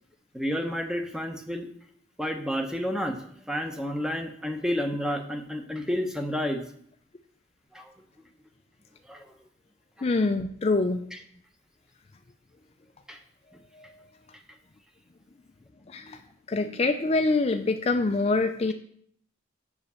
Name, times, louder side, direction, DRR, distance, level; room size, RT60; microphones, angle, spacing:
voice 1, 0.3-1.7 2.2-6.6 7.7-7.9 8.2-8.3 9.1-9.3 11.1-11.2 13.1-13.2 13.5-13.6, equal, 5° right, 5 dB, 0.8 m, -30 dB
voice 2, 10.0-11.0 15.9-16.2 16.5-18.7, left 3 dB, 35° left, 7 dB, 0.4 m, -25 dB
7.2 x 5.0 x 6.8 m, 0.64 s
head